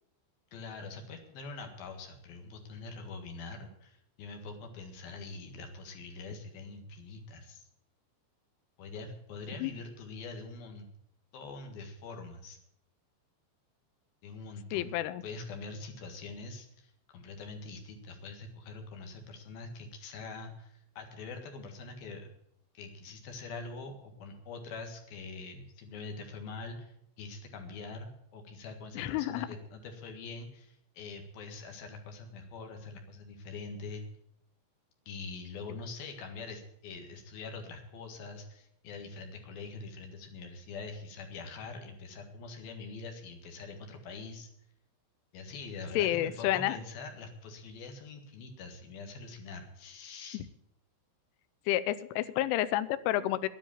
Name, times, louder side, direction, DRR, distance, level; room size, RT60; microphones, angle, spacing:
voice 1, 0.5-7.7 8.8-10.9 11.3-12.6 14.2-14.9 15.2-22.3 22.7-34.0 35.1-44.5 45.3-50.4, left 3 dB, 60° left, 4 dB, 3.1 m, -44 dB
voice 2, 14.7-15.2 29.0-29.5 46.0-46.8 50.3-50.4 51.7-53.5, left 14 dB, 85° left, 15 dB, 3.1 m, -30 dB
10.5 x 10.5 x 8.5 m, 0.74 s
omnidirectional pair, 5.5 m